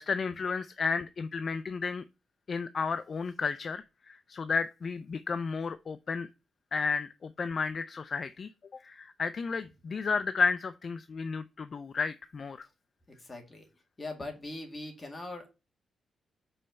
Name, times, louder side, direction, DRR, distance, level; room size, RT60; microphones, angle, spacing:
voice 1, 0.0-2.0 2.5-6.3 6.7-8.5 8.8-12.7, left 5 dB, 40° left, 0.4 m, -32 dB
voice 2, 13.1-13.6 14.0-15.5, left 2 dB, 20° left, 2.0 m, -41 dB
5.5 x 4.3 x 5.2 m
cardioid pair, 130°, 0 cm